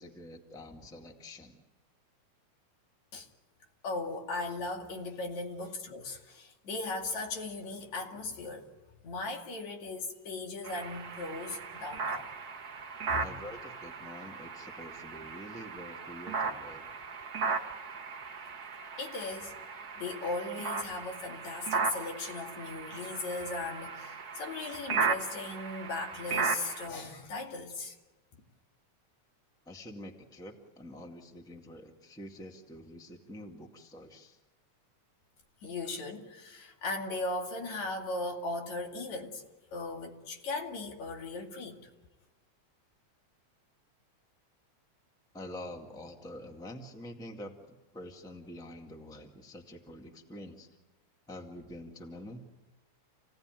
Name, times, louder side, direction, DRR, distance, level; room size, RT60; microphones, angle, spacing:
voice 1, 0.0-1.6 13.2-16.9 29.6-34.4 45.3-50.7 51.3-52.4, left 1 dB, ahead, 1.5 m, -46 dB
voice 2, 3.8-8.7 9.0-12.3 13.1-13.3 19.0-19.6 20.0-28.0 35.6-39.4 39.7-41.8, left 3 dB, 70° left, 3.7 m, -37 dB
sound 1, 10.6-26.9, right 4 dB, 45° right, 1.2 m, -36 dB
29.0 x 17.0 x 9.2 m
omnidirectional pair, 3.3 m